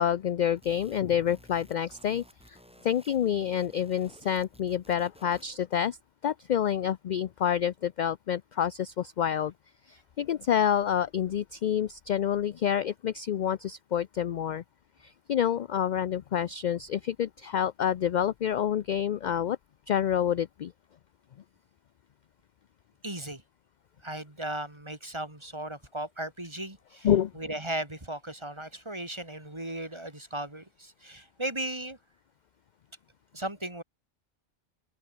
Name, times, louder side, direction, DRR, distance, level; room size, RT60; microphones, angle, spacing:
voice 1, 0.0-2.6 2.8-6.0 6.2-9.5 9.9-14.6 15.0-19.6 19.9-20.7 27.0-27.3, left 9 dB, 60° left, 0.5 m, -28 dB
sound 1, 0.6-5.6, equal, 5° right, 5.6 m, -56 dB
voice 2, 23.0-23.4 24.0-27.1 27.4-32.0 33.3-33.8, right 1 dB, 25° right, 3.3 m, -36 dB
open air
omnidirectional pair, 1.2 m